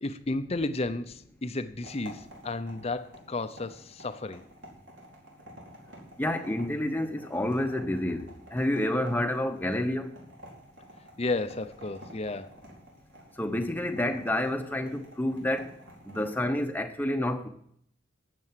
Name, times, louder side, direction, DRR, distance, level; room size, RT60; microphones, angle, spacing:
voice 1, 0.0-4.4 11.2-12.6, left 2 dB, 30° left, 10 dB, 0.7 m, -33 dB
sound 1, 1.8-16.4, equal, 70° right, 4.7 m, -50 dB
voice 2, 6.2-10.1 13.4-15.7 16.1-17.5, left 1 dB, 10° left, 6 dB, 0.9 m, -29 dB
12.5 x 7.7 x 7.5 m, 0.68 s
head